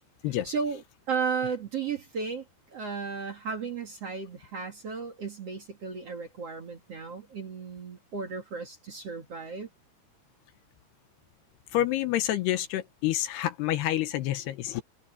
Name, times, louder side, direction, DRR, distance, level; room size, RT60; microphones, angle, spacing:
voice 1, 0.4-0.8 1.1-2.4 2.7-9.7, right 5 dB, 45° right, 2.4 m, -34 dB
voice 2, 11.7-14.8, left 13 dB, 75° left, 2.9 m, -28 dB
omnidirectional pair, 5.0 m